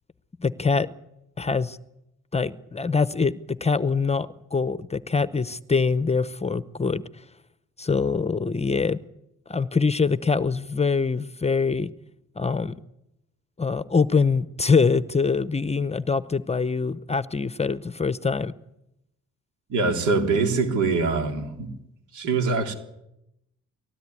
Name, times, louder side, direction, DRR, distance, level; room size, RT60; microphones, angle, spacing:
voice 1, 0.4-0.9 1.4-1.8 2.3-7.0 7.8-9.0 9.5-11.9 12.4-12.8 13.6-18.5, left 4 dB, 20° left, 0.8 m, -24 dB
voice 2, 19.7-21.7 22.1-22.7, right 4 dB, 75° right, 3.7 m, -23 dB
19.5 x 16.0 x 9.8 m
cardioid pair, 90°, 30 cm